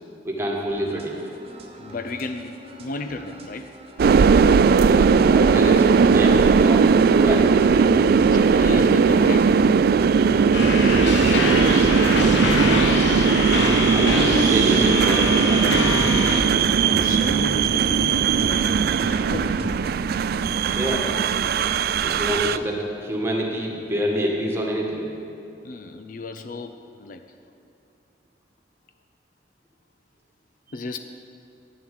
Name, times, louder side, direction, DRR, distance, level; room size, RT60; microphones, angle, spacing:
voice 1, 0.2-1.1 4.7-7.6 13.1-16.0 20.6-21.2 22.0-25.1, equal, 15° right, -2 dB, 1.6 m, -27 dB
sound 1, 0.7-19.9, equal, 35° right, 1.2 m, -38 dB
voice 2, 1.8-3.7 8.3-9.6 10.7-11.9 12.4-12.7 16.9-18.8 19.1-19.7 25.6-27.2 30.7-31.0, left 2 dB, 50° left, 7 dB, 0.5 m, -34 dB
sound 2, 4.0-22.6, right 5 dB, 55° right, 0.3 m, -18 dB
sound 3, 10.5-16.4, left 2 dB, 85° left, 1.3 m, -25 dB
10.5 x 7.3 x 9.4 m, 2.7 s
head